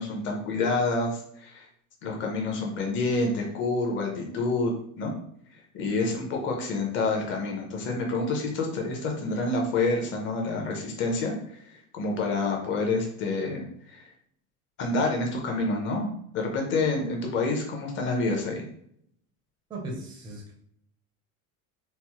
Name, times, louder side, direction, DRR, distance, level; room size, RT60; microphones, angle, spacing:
voice 1, 0.0-1.7 2.0-5.1 5.7-14.1 14.8-18.7, left 3 dB, 30° left, 1 dB, 0.7 m, -28 dB
voice 2, 19.7-20.5, right 1 dB, 10° right, 0 dB, 0.4 m, -37 dB
4.3 x 2.0 x 2.9 m, 0.68 s
cardioid pair, 170°, 37 cm